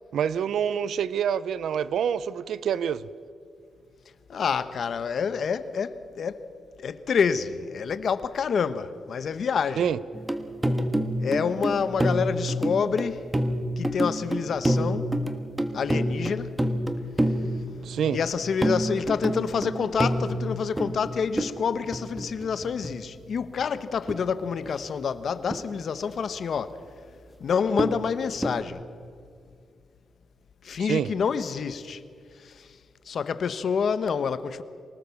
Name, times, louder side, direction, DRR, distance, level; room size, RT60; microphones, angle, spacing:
voice 1, 0.1-3.1 9.8-10.0 17.8-18.2 30.8-31.1, right 8 dB, 80° right, 0.7 m, -26 dB
voice 2, 4.3-6.4 6.8-9.9 11.2-13.2 13.8-15.1 15.7-16.5 17.2-26.8 27.4-28.8 30.6-32.0 32.4-32.7 33.1-34.6, left 6 dB, 60° left, 1.1 m, -28 dB
sound 1, 10.1-23.4 24.1-24.7 25.5-25.6 27.8-28.6, right 1 dB, 10° right, 1.5 m, -29 dB
25.5 x 19.0 x 7.1 m
cardioid pair, 105°, 0 cm